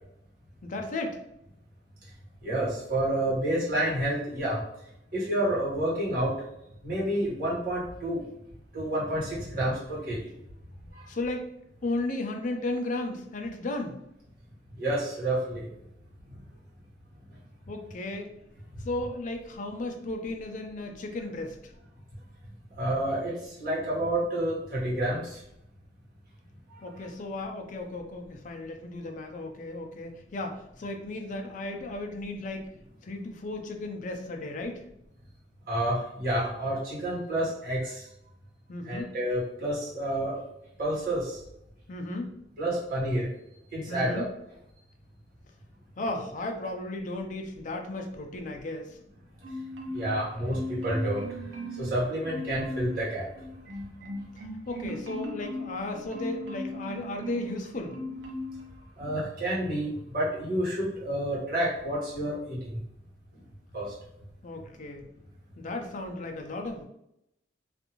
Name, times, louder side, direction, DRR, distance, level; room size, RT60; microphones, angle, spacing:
voice 1, 0.6-1.2 11.1-11.4 11.8-14.0 17.7-18.3 18.8-21.7 26.8-32.7 33.0-34.8 38.7-39.1 41.9-42.3 43.9-44.3 46.0-49.0 54.3-58.0 64.4-65.0 65.6-66.8, left 2 dB, 45° left, 3 dB, 0.4 m, -35 dB
voice 2, 2.4-4.6 5.1-6.3 6.8-8.2 8.7-10.2 10.9-11.1 14.8-15.6 22.8-23.3 23.6-25.4 26.9-27.1 35.7-38.0 38.9-40.3 40.8-41.4 42.6-43.3 43.7-44.2 49.9-51.2 51.8-53.3 59.0-62.7 63.7-63.9, right 1 dB, 55° right, -6 dB, 1.3 m, -29 dB
Marimba xylophone, 49.4-50.2 50.5-51.9 52.3-53.0 53.4-57.5 57.9-58.6 59.0-59.2, left 1 dB, 70° right, 0.5 m, -38 dB
2.6 x 2.5 x 2.9 m, 0.80 s
head